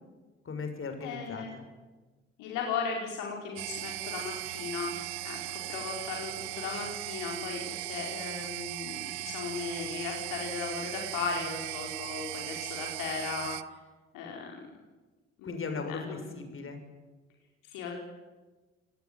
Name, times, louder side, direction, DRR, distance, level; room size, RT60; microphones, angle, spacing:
voice 1, 0.4-1.6 15.4-16.8, left 4 dB, 35° left, 7 dB, 6.4 m, -38 dB
voice 2, 1.0-1.5 2.4-5.0 5.2-13.5 14.1-14.5 15.4-15.6 15.9-16.4 17.7-17.9, left 5 dB, 60° left, 0 dB, 4.8 m, -36 dB
sound 1, 3.6-13.6, right 21 dB, 65° right, 1.0 m, -38 dB
29.0 x 18.5 x 9.5 m, 1.3 s
figure-of-eight pair, 50°, 35 cm